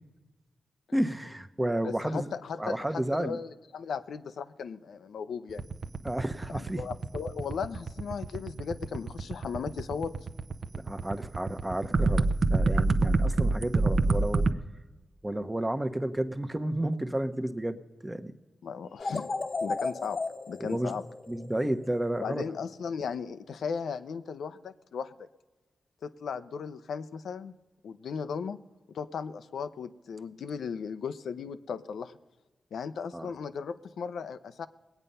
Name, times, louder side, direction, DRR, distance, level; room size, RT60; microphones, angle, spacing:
voice 1, 0.9-2.3 2.6-3.4 6.0-6.8 10.8-14.4 15.2-18.3 20.6-21.0 21.3-22.4 33.1-33.3, right 1 dB, 10° right, 10 dB, 0.9 m, -31 dB
voice 2, 1.8-5.7 6.5-10.1 18.6-19.3 19.6-20.2 20.5-21.0 22.2-25.1 26.0-27.5 27.8-28.6 28.9-32.2 32.7-34.7, left 6 dB, 90° left, 11 dB, 0.6 m, -36 dB
sound 1, 5.5-14.5, right 3 dB, 55° right, 0.7 m, -27 dB
sound 2, 19.0-22.2, left 3 dB, 45° left, 0.9 m, -35 dB
21.0 x 9.0 x 5.5 m, 1.2 s
cardioid pair, 85°, 0 cm